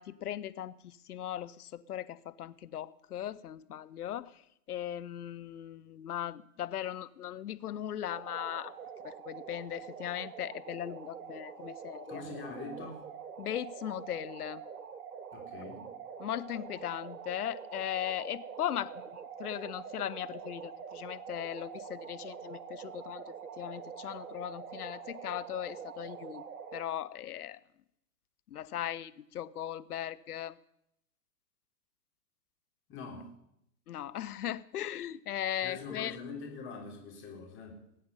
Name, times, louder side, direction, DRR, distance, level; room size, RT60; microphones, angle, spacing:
voice 1, 0.0-4.3 4.7-8.7 9.0-12.2 13.4-14.6 16.2-26.4 26.7-27.6 28.5-30.6 33.9-36.2, left 11 dB, 75° left, 16 dB, 0.9 m, -38 dB
sound 1, 8.1-26.8, right 7 dB, 70° right, 1.8 m, -45 dB
voice 2, 12.1-13.0 15.3-15.9 32.9-33.3 35.6-37.9, left 4 dB, 25° left, 0 dB, 3.7 m, -43 dB
20.0 x 8.6 x 5.6 m, 0.78 s
hypercardioid pair, 125°, 46 cm